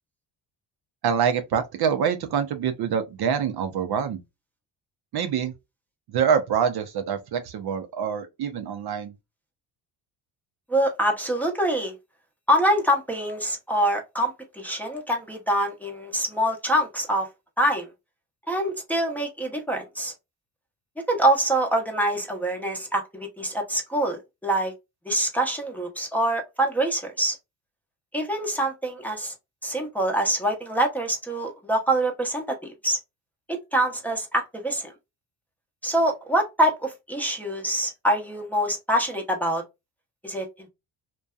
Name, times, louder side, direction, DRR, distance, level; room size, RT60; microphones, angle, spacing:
voice 1, 1.0-4.2 5.1-5.5 6.1-9.1, right 7 dB, 55° right, 0.5 m, -25 dB
voice 2, 10.7-11.9 12.5-17.3 17.6-17.9 18.5-20.1 21.1-24.7 25.1-27.4 28.1-29.3 29.6-33.0 33.5-34.9 35.8-39.6 40.2-40.5, right 1 dB, 5° left, 0.7 m, -25 dB
2.6 x 2.2 x 2.2 m
cardioid pair, 95°, 48 cm